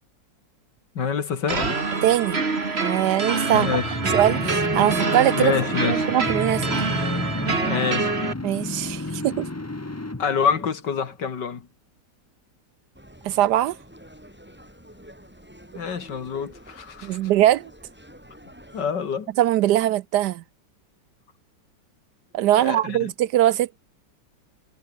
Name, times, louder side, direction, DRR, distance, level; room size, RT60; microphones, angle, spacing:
voice 1, 0.9-1.8 3.5-4.0 5.4-6.1 7.6-8.1 10.2-11.7 15.7-17.2 18.7-19.3 22.6-23.1, left 6 dB, 70° left, 2.6 m, -26 dB
sound 1, 1.5-8.3, right 4 dB, 35° right, 2.4 m, -26 dB
voice 2, 2.0-2.4 2.7-3.8 4.1-5.5 5.8-6.6 8.4-9.5 13.2-13.8 17.0-17.7 19.4-20.4 22.3-23.8, right 13 dB, 70° right, 1.1 m, -21 dB
sound 2, 3.0-11.2, left 2 dB, 15° left, 0.5 m, -32 dB
sound 3, 12.9-18.9, equal, 5° right, 5.9 m, -48 dB
omnidirectional pair, 2.0 m